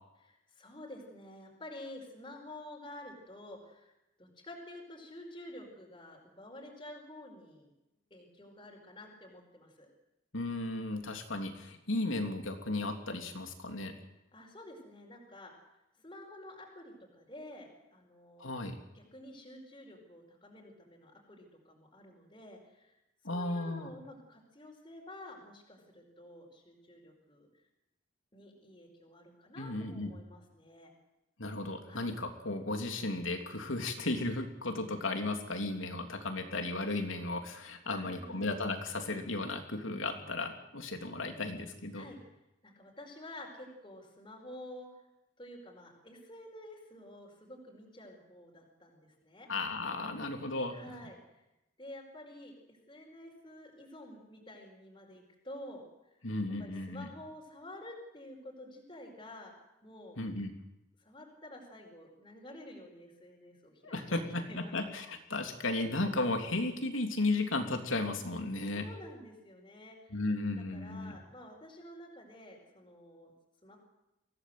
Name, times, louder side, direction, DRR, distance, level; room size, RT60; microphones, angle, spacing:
voice 1, 0.2-3.9 4.2-7.7 8.1-9.9 14.3-15.5 16.0-18.5 18.9-23.0 23.3-27.5 28.3-30.9 31.9-32.1 37.9-38.5 41.9-42.2 42.6-45.0 45.4-49.5 50.7-51.4 51.8-55.8 56.6-59.5 59.8-60.2 61.0-64.9 68.7-70.3 70.7-73.3 73.6-73.8, left 1 dB, 25° left, -1 dB, 4.9 m, -50 dB
voice 2, 10.3-13.9 18.4-18.8 23.2-23.9 29.6-30.1 31.4-42.1 49.5-50.7 56.2-57.1 60.2-60.6 63.8-68.9 70.1-71.2, left 2 dB, 85° left, 5 dB, 3.2 m, -35 dB
24.0 x 17.0 x 7.9 m, 0.94 s
head